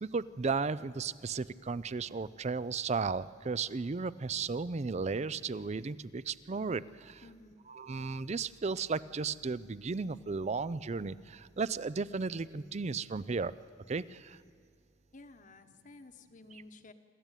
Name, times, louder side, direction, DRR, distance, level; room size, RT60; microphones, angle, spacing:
voice 1, 0.0-7.2 7.7-13.5 13.9-14.4 16.5-16.6, right 4 dB, 35° right, 17 dB, 0.4 m, -35 dB
voice 2, 7.2-7.6 15.1-16.9, left 2 dB, 40° left, 8 dB, 1.1 m, -53 dB
26.5 x 13.5 x 9.0 m, 2.2 s
head